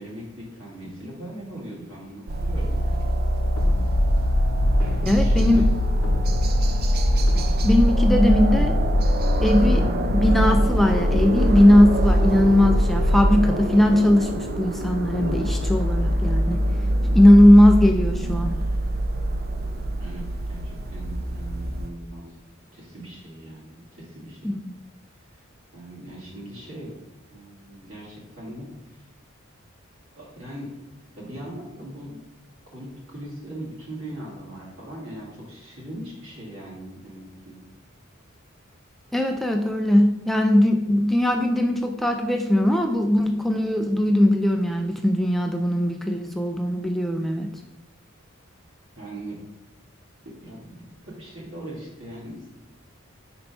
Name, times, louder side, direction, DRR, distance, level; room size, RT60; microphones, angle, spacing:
voice 1, 0.0-3.1 4.3-4.9 5.2-5.7 20.0-22.4 22.7-24.5 25.2-25.4 25.7-26.9 27.3-29.1 30.1-30.7 31.2-32.2 32.7-37.6 49.0-49.4 50.2-50.7 51.0-52.5, right 1 dB, 70° right, -5 dB, 2.2 m, -40 dB
sound 1, 2.3-21.9, right 1 dB, 50° right, 0.6 m, -25 dB
sound 2, 3.6-13.5, left 1 dB, 75° left, 0.6 m, -22 dB
voice 2, 5.0-5.6 7.6-8.7 9.4-9.9 10.1-16.6 17.1-18.6 24.4-24.7 39.1-47.5, left 1 dB, ahead, 3 dB, 0.3 m, -19 dB
5.4 x 4.3 x 4.2 m, 0.96 s
head